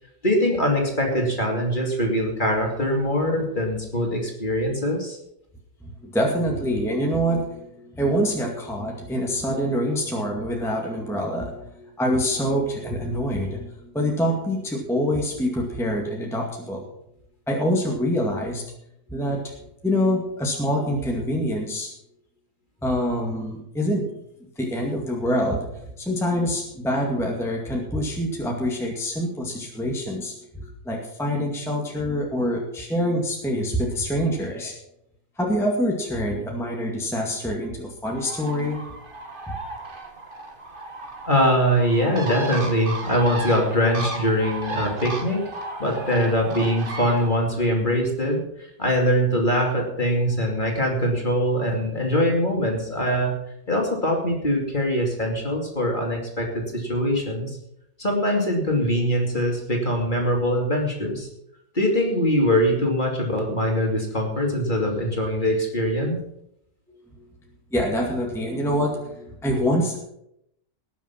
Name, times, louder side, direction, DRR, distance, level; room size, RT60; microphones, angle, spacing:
voice 1, 0.2-5.2 41.3-45.5 45.8-53.3 53.7-57.6 58.0-61.3 61.7-66.2, equal, 25° left, 0 dB, 2.8 m, -23 dB
voice 2, 5.8-16.9 17.5-18.6 19.1-21.9 22.8-24.0 24.6-25.7 26.0-34.7 35.4-38.8 39.5-39.6 67.1-67.2 67.7-70.0, equal, ahead, -1 dB, 2.0 m, -25 dB
Bird, 38.1-47.3, right 2 dB, 30° right, 1.7 m, -35 dB
19.0 x 7.2 x 5.9 m, 0.78 s
omnidirectional pair, 1.9 m